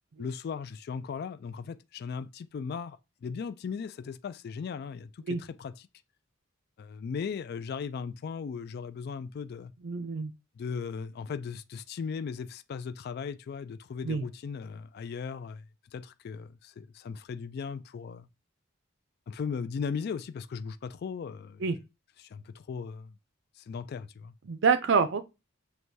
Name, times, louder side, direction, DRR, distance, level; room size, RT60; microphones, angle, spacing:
voice 1, 0.2-5.9 6.8-9.7 10.6-15.6 15.9-18.3 19.3-21.6 22.2-23.1 23.6-24.3, left 6 dB, 50° left, 0.3 m, -37 dB
voice 2, 9.8-10.3 14.0-14.2 21.6-21.8 24.5-25.2, right 5 dB, 60° right, 0.5 m, -26 dB
6.2 x 2.3 x 2.7 m
head